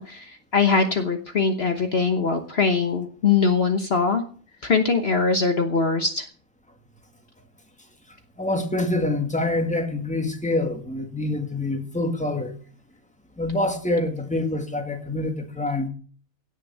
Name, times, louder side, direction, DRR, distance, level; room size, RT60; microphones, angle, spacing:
voice 1, 0.0-4.2 4.6-6.3, left 4 dB, 50° left, 1.4 m, -22 dB
voice 2, 8.4-12.6 13.4-15.9, left 2 dB, 5° left, 2.0 m, -26 dB
17.5 x 6.4 x 7.2 m
omnidirectional pair, 1.4 m